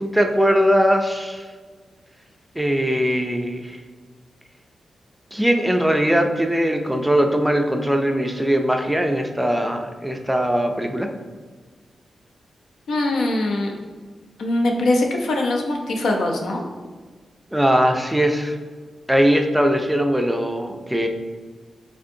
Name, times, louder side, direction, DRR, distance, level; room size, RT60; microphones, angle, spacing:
voice 1, 0.0-1.4 2.6-3.8 5.3-11.1 17.5-18.6 19.1-21.1, equal, 5° right, 4 dB, 0.3 m, -20 dB
voice 2, 12.9-13.7 14.4-16.6, left 2 dB, 90° left, 1 dB, 0.6 m, -22 dB
5.1 x 3.5 x 2.6 m, 1.5 s
wide cardioid pair, 130°, 0 cm